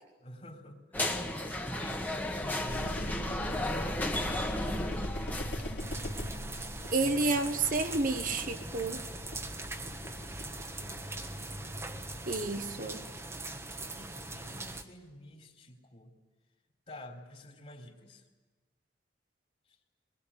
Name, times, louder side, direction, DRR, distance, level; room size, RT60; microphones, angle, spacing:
voice 1, 0.2-4.8 10.0-11.8 13.9-16.1 16.9-18.2 19.7-19.8, left 1 dB, 40° left, 1 dB, 3.5 m, -50 dB
sound 1, 0.9-5.9, left 1 dB, 10° left, 1.5 m, -34 dB
sound 2, 2.7-12.2, equal, 70° left, 3.4 m, -41 dB
sound 3, 5.8-14.8, right 2 dB, 15° right, 1.3 m, -41 dB
voice 2, 6.9-9.0 12.3-13.0, right 3 dB, 50° right, 7 dB, 1.4 m, -30 dB
23.5 x 21.0 x 9.9 m, 1.2 s
head